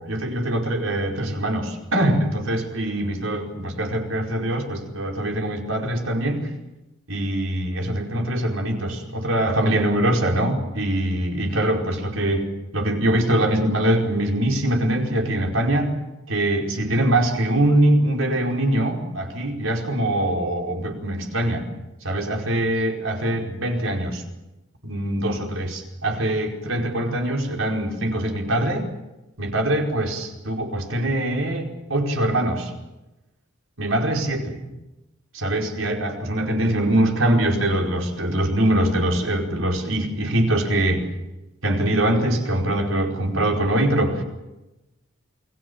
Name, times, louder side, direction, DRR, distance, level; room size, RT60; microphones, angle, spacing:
voice 1, 0.0-6.5 7.1-15.9 16.3-21.7 22.0-24.2 24.8-28.9 29.4-32.7 33.8-34.6 35.3-41.1 41.6-44.2, right 1 dB, 85° right, 1 dB, 5.1 m, -23 dB
28.5 x 22.0 x 7.1 m, 0.99 s
head